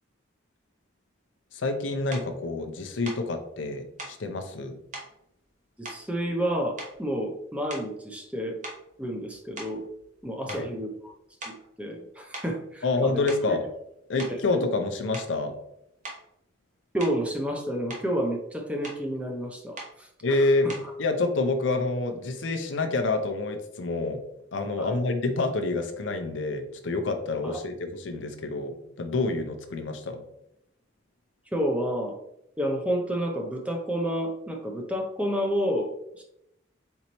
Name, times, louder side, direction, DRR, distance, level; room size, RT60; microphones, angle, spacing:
voice 1, 1.5-4.8 10.5-10.7 12.8-13.6 14.1-15.5 20.2-20.7 21.0-24.2 24.5-30.2, left 3 dB, 85° left, 6 dB, 0.6 m, -28 dB
sound 1, 2.1-2.3 3.0-3.3 4.0-4.2 4.9-5.1 5.8-6.5 6.8-7.2 7.7-8.0 8.6-10.2 10.5-10.7 11.4-11.7 12.3-12.6 13.1-13.6 14.2-14.4 15.1-15.4 16.0-16.3 17.0-17.3 17.7-18.1 18.8-19.1 19.8-20.0 20.7-21.0, right 2 dB, 40° right, 1.0 m, -41 dB
voice 2, 5.8-8.6 9.0-9.9 10.2-11.1 11.4-13.6 14.3-14.4 16.9-20.9 24.8-25.0 27.4-27.6 31.5-32.2 32.6-36.2, equal, 5° right, 2 dB, 0.5 m, -30 dB
4.5 x 3.9 x 2.9 m, 0.80 s
head